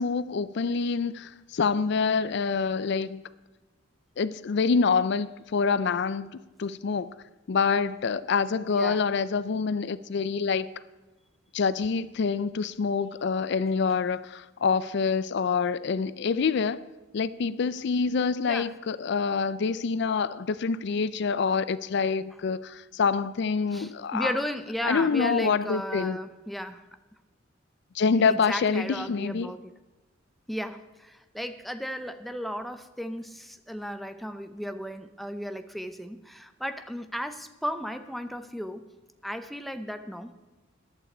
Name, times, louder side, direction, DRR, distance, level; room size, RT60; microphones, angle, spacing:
voice 1, 0.0-3.2 4.2-7.1 7.5-10.7 11.5-16.8 17.1-24.3 24.8-26.2 27.9-29.5, left 5 dB, 55° left, 0.4 m, -26 dB
voice 2, 8.7-9.0 18.5-18.7 23.7-26.8 28.3-29.7 30.5-38.9 39.2-40.3, equal, ahead, 0.6 m, -35 dB
15.0 x 11.0 x 4.3 m
head